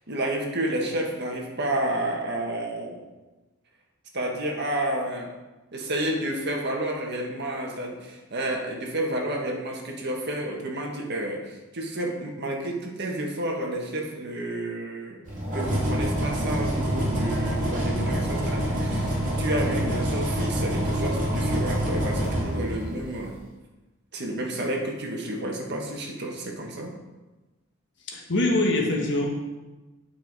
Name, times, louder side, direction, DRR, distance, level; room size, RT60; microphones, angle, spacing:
voice 1, 0.1-3.0 4.1-5.3 5.7-15.2 15.5-23.3 24.1-26.9, right 1 dB, 55° right, 0 dB, 1.6 m, -30 dB
sound 1, 15.3-23.2, equal, 40° right, 3.0 m, -26 dB
voice 2, 28.0-29.3, left 2 dB, 60° left, 0 dB, 1.5 m, -23 dB
9.7 x 5.8 x 4.8 m, 1.1 s
head